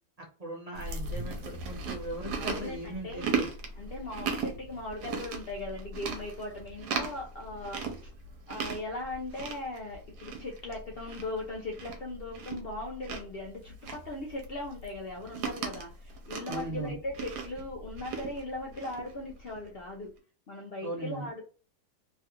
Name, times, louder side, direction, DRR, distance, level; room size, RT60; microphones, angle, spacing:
voice 1, 0.4-3.5 16.5-17.0 20.8-21.3, right 2 dB, 50° right, -4 dB, 0.4 m, -38 dB
Chewing mastication, 0.8-19.7, right 4 dB, 80° right, 1.3 m, -38 dB
voice 2, 2.3-3.2 3.8-8.1 8.5-20.1 20.5-21.4, left 2 dB, 80° left, -1 dB, 0.5 m, -39 dB
3.3 x 2.4 x 2.8 m, 0.38 s
omnidirectional pair, 1.8 m